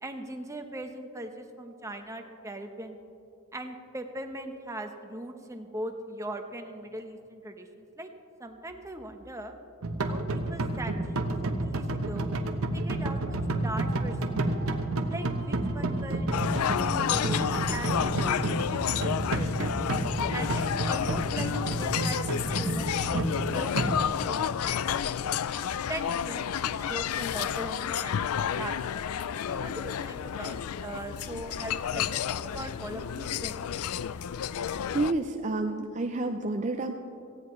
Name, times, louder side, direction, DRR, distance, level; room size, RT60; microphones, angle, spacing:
voice 1, 0.0-3.0 3.5-8.1 8.4-9.5 10.1-12.3 12.7-14.7 15.1-16.3 16.7-19.8 20.3-25.4 25.9-29.1 29.5-33.7, right 1 dB, 15° right, 5 dB, 0.9 m, -40 dB
sound 1, 9.8-24.0, right 2 dB, 75° right, 1.0 m, -30 dB
sound 2, 16.3-35.1, left 8 dB, 90° left, 0.4 m, -31 dB
voice 2, 34.9-37.0, right 2 dB, 35° right, 5 dB, 0.5 m, -29 dB
18.0 x 15.5 x 3.2 m, 2.8 s
head